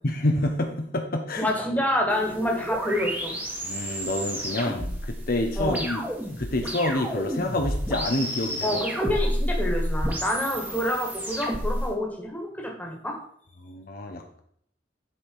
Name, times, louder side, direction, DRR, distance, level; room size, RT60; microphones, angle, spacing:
voice 1, 0.0-1.5 3.6-6.0 6.4-8.8 13.6-14.4, left 1 dB, 55° left, 3 dB, 1.0 m, -28 dB
voice 2, 1.4-3.4 4.8-4.9 5.6-5.9 8.6-13.2, left 1 dB, 10° left, 0 dB, 1.9 m, -27 dB
sound 1, 2.1-11.9, equal, 10° right, 1.6 m, -30 dB
11.0 x 5.0 x 4.8 m, 0.65 s
head